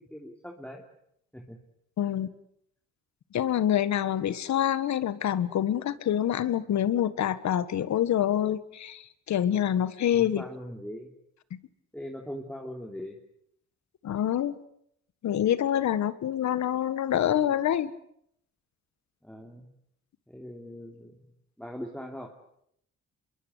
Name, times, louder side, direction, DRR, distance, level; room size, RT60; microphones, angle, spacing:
voice 1, 0.1-0.8 1.3-1.6 2.0-2.2 10.1-11.1 11.9-13.2 19.2-19.7 20.3-21.3 21.6-22.4, equal, 5° left, 1 dB, 3.2 m, -41 dB
voice 2, 2.0-2.3 3.3-10.4 14.0-14.6 15.2-17.9, left 10 dB, 65° left, 15 dB, 1.7 m, -26 dB
26.5 x 22.5 x 8.3 m, 0.72 s
cardioid pair, 90°, 30 cm